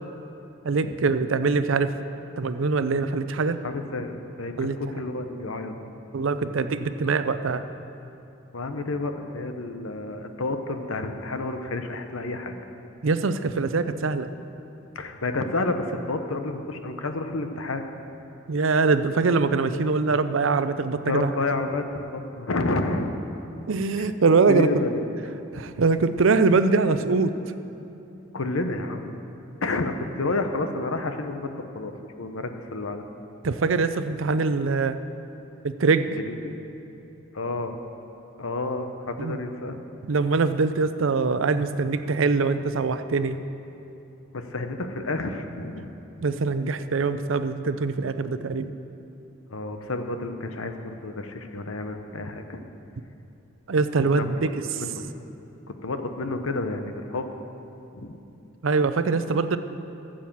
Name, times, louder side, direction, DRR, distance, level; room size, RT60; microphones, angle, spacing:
voice 1, 0.6-1.9 2.4-3.6 4.6-4.8 6.1-7.6 13.0-14.3 18.5-21.3 23.7-24.7 25.5-27.3 33.4-35.0 35.6-36.1 39.2-39.4 40.0-43.4 46.2-48.7 53.7-54.8 58.6-59.6, right 4 dB, 75° right, 11 dB, 0.5 m, -23 dB
voice 2, 3.6-5.8 8.5-12.6 14.9-17.8 21.1-23.1 24.0-24.1 24.5-25.4 28.3-29.1 29.6-31.9 32.2-33.0 36.1-36.6 37.3-37.8 38.4-39.8 44.3-45.9 49.5-52.6 54.2-54.5 54.8-55.0 55.8-57.3 57.9-58.2, left 2 dB, 85° left, 7 dB, 0.9 m, -30 dB
13.5 x 7.6 x 7.3 m, 2.8 s
head